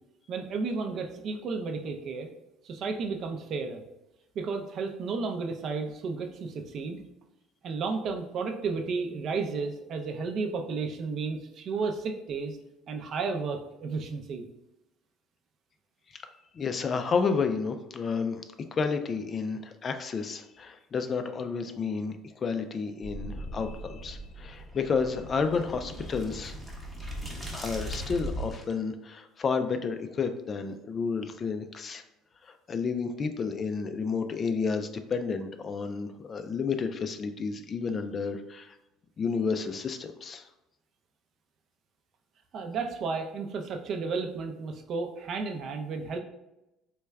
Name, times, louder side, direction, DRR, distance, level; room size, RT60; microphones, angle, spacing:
voice 1, 0.3-2.3 2.6-3.8 4.4-7.0 7.6-12.6 12.9-14.5 42.5-46.2, right 4 dB, 50° right, 5 dB, 0.5 m, -33 dB
voice 2, 16.5-18.4 18.7-26.6 27.5-32.0 32.4-38.7 39.2-40.5, left 5 dB, 35° left, 8 dB, 0.3 m, -31 dB
sound 1, 23.0-28.7, equal, 5° right, 0.8 m, -39 dB
3.3 x 2.2 x 3.3 m, 0.92 s
supercardioid pair, 100°, 0 cm